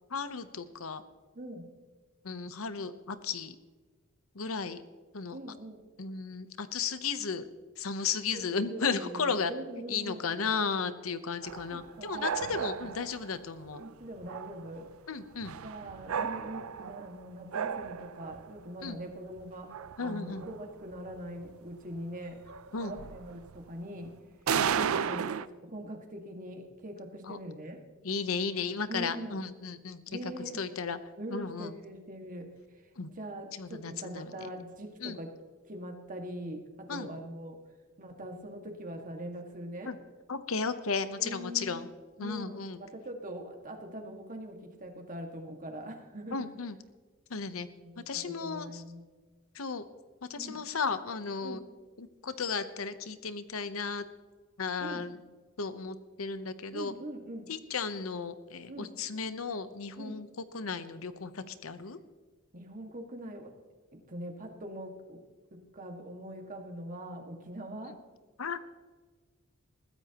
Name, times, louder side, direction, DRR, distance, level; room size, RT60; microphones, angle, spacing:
voice 1, 0.1-1.0 2.2-3.5 4.3-4.8 5.1-5.4 6.0-7.5 7.8-9.5 9.9-13.8 15.1-15.6 18.8-19.0 20.0-20.5 22.7-22.9 24.5-24.7 27.2-27.4 28.0-31.0 31.3-31.8 33.0-33.1 33.5-34.4 35.0-35.2 36.9-37.1 39.9-40.0 40.3-41.9 42.2-42.8 46.3-46.8 47.3-47.7 48.1-48.8 49.5-49.8 50.3-51.6 52.0-54.0 54.6-55.2 55.6-56.9 57.5-60.3 60.5-62.0 68.4-68.6, left 5 dB, 85° left, 12 dB, 0.9 m, -34 dB
voice 2, 5.3-5.8 8.3-10.3 11.7-12.9 13.8-14.9 15.6-19.7 20.0-22.4 22.8-24.1 24.8-25.3 25.6-27.8 28.9-29.4 30.1-30.6 31.2-32.5 33.0-35.3 35.7-36.6 36.9-37.6 38.0-39.9 41.2-41.7 42.2-46.5 47.9-49.0 50.4-50.6 51.4-51.7 54.8-55.1 56.7-57.5 58.7-58.9 60.0-60.2 62.5-63.5 63.9-65.2 65.7-67.9, right 1 dB, 40° right, 3 dB, 1.9 m, -42 dB
sound 1, 11.4-13.3 13.7-13.9 14.2-14.8 15.4-17.1 17.5-18.5 19.0-19.1 19.4-20.6 20.9-21.2 21.4-21.5 22.0-22.1 22.5-23.6 24.5-25.5, right 7 dB, 85° right, 0.5 m, -34 dB
21.0 x 15.0 x 3.0 m, 1.4 s
head